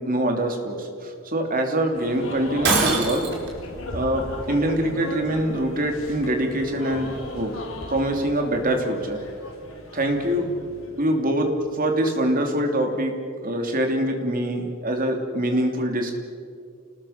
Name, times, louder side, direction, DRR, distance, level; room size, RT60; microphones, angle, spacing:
voice 1, 0.0-3.3 3.9-7.1 7.3-7.5 7.9-9.2 9.9-10.4 11.0-11.5 11.7-13.1 13.4-16.1, right 1 dB, 40° right, 3 dB, 2.9 m, -24 dB
sound 1, 1.9-11.7, left 1 dB, 75° left, 4.7 m, -37 dB
Shatter, 2.6-3.5, right 3 dB, 55° right, 4.6 m, -22 dB
29.0 x 20.0 x 5.8 m, 2.2 s
head